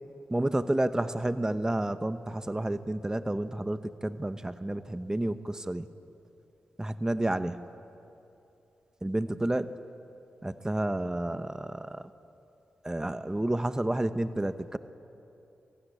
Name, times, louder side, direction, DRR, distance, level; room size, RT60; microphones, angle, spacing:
voice 1, 0.3-5.9 6.8-7.6 9.0-9.7 10.4-12.1 12.8-14.8, right 1 dB, 15° right, 12 dB, 0.9 m, -30 dB
22.5 x 16.0 x 9.9 m, 2.8 s
cardioid pair, 50°, 4 cm